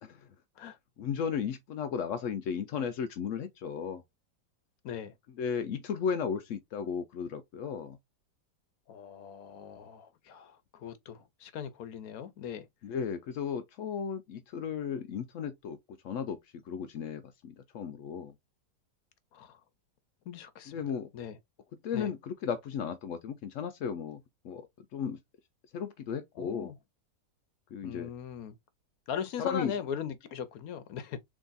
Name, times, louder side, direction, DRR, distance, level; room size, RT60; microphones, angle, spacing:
voice 1, 1.0-4.0 5.4-8.0 12.8-15.8 16.0-16.4 16.7-18.3 20.7-21.1 21.8-24.7 24.9-25.2 25.7-26.7 27.7-28.1 29.4-29.8, left 7 dB, 80° left, 0.6 m, -35 dB
voice 2, 8.9-12.7 19.3-19.6 20.3-20.7 21.1-21.4 21.9-22.1 26.4-26.7 27.8-28.6 29.1-31.2, left 8 dB, 65° left, 1.0 m, -39 dB
3.5 x 3.1 x 3.9 m
omnidirectional pair, 1.9 m